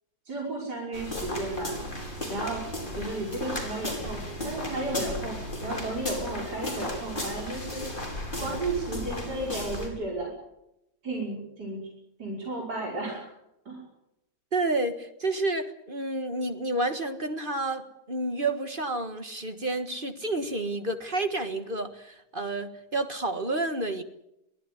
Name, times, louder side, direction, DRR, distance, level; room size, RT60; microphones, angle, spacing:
voice 1, 0.3-1.7 2.3-2.6 3.0-7.8 8.4-10.3 11.0-11.8 12.2-13.3 13.7-13.8, right 2 dB, 70° right, -2 dB, 6.2 m, -33 dB
sound 1, 0.9-9.9, left 1 dB, 30° left, 5.5 m, -35 dB
voice 2, 14.5-24.0, right 2 dB, 30° right, 8 dB, 1.6 m, -30 dB
23.0 x 15.5 x 9.8 m, 0.84 s
omnidirectional pair, 1.8 m